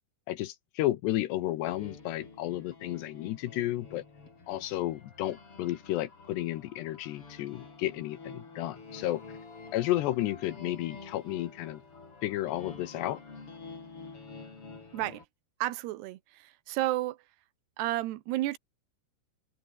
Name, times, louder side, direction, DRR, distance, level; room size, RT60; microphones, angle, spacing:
voice 1, 0.3-4.0 4.5-9.2 9.7-11.8 12.2-13.2, left 15 dB, 80° left, 3.1 m, -32 dB
sound 1, 1.6-15.2, left 4 dB, 30° left, 5.4 m, -48 dB
voice 2, 15.6-16.2 16.7-17.2 17.8-18.6, right 16 dB, 75° right, 3.0 m, -31 dB
omnidirectional pair, 5.0 m